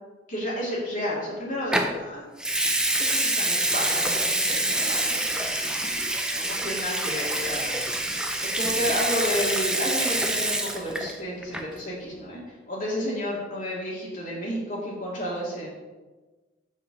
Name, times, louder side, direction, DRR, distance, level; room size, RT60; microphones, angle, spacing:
voice 1, 0.3-2.2 3.1-5.6 6.3-7.8 8.4-15.7, equal, 45° left, -5 dB, 2.2 m, -31 dB
Water tap faucet / Sink (filling or washing) / Liquid, 1.7-2.0 2.4-11.2 11.4-11.8, right 1 dB, 5° right, 0.6 m, -26 dB
6.2 x 5.9 x 6.3 m, 1.2 s
head